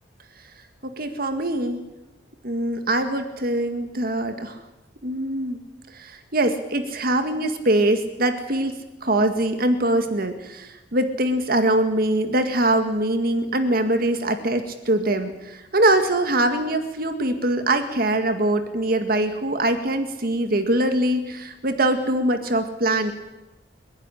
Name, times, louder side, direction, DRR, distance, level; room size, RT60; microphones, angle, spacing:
voice 1, 0.8-1.8 2.4-4.6 5.0-5.6 5.9-23.1, right 1 dB, 55° right, 7 dB, 1.9 m, -23 dB
29.5 x 11.0 x 9.9 m, 1.0 s
head